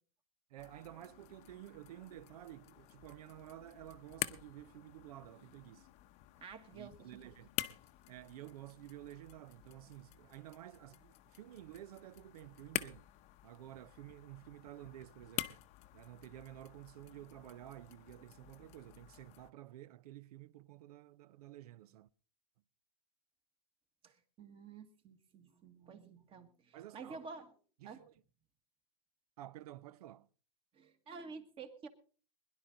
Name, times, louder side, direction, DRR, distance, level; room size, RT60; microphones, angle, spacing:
voice 1, 0.5-5.9 6.7-7.5 8.1-13.1 13.4-15.5 15.9-22.1 26.7-27.2 27.8-28.1 29.4-30.3, right 14 dB, 75° right, 0.6 m, -52 dB
sound 1, 0.6-19.5, left 16 dB, 35° left, 0.7 m, -48 dB
voice 2, 6.4-7.2 24.0-27.5 27.8-28.0 30.7-31.9, right 4 dB, 30° right, 1.6 m, -51 dB
21.0 x 11.0 x 3.8 m
supercardioid pair, 140°, 19 cm